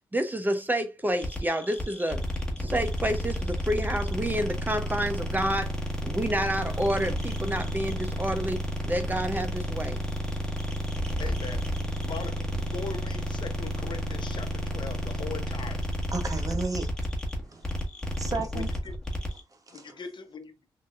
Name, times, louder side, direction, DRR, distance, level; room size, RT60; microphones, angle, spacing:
voice 1, 0.1-2.2 2.6-5.8 6.0-10.0, right 1 dB, 20° right, 0.7 m, -29 dB
sound 1, 1.2-19.4, equal, 10° left, 1.4 m, -31 dB
voice 2, 11.2-15.9 18.5-18.9 19.7-20.5, left 5 dB, 55° left, 0.7 m, -40 dB
voice 3, 16.1-16.9 17.5-17.7 18.1-18.7 19.5-20.0, right 3 dB, 35° right, 1.1 m, -33 dB
3.7 x 2.7 x 2.4 m
supercardioid pair, 40°, 10 cm